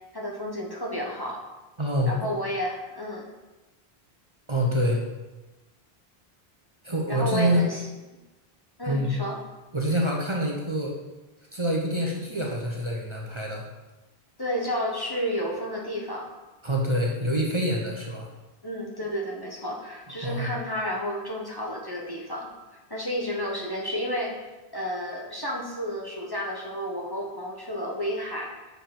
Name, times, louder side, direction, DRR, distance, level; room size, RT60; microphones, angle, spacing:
voice 1, 0.1-1.4 2.0-3.3 7.1-7.8 8.8-9.4 14.4-16.3 18.6-22.5 22.9-24.3 24.7-28.5, equal, 25° left, -3 dB, 1.0 m, -31 dB
voice 2, 1.8-2.1 4.5-5.0 6.8-7.7 8.8-9.2 9.7-11.0 11.5-13.6 16.6-18.3 20.2-20.5, equal, 30° right, -2 dB, 1.0 m, -26 dB
6.7 x 5.0 x 5.9 m, 1.1 s
omnidirectional pair, 1.1 m